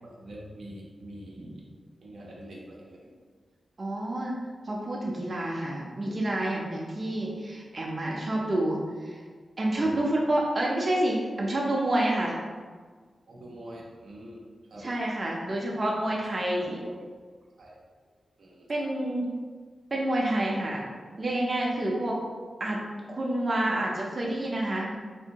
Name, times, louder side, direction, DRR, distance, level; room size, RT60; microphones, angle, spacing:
voice 1, 0.0-1.6 2.0-3.1 9.7-10.0 13.3-14.4 14.7-14.8 16.0-17.1 17.6-17.8 18.4-18.9 21.7-21.9, right 1 dB, 80° right, -3 dB, 0.6 m, -45 dB
voice 2, 3.8-4.4 4.6-9.2 9.6-12.3 14.8-16.8 18.7-19.3 19.9-20.9 21.2-22.2 22.6-22.8 23.1-24.9, right 1 dB, 40° right, -3 dB, 0.6 m, -28 dB
3.4 x 2.6 x 2.9 m, 1.5 s
wide cardioid pair, 80°, 0 cm